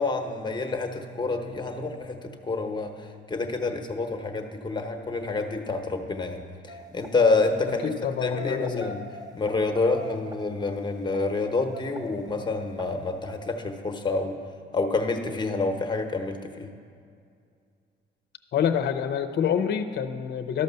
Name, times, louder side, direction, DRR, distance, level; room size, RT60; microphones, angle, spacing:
voice 1, 0.0-7.9 8.2-9.0 9.3-14.4 14.7-16.7, left 3 dB, 20° left, 5 dB, 1.0 m, -28 dB
sound 1, 6.7-7.1 7.7-7.9 8.3-11.2 11.7-12.0 12.6-12.9 13.2-13.4, right 1 dB, 20° right, 0.8 m, -42 dB
voice 2, 7.8-8.9 18.5-20.6, left 8 dB, 55° left, 8 dB, 0.6 m, -27 dB
12.0 x 5.3 x 6.8 m, 2.3 s
cardioid pair, 90°, 20 cm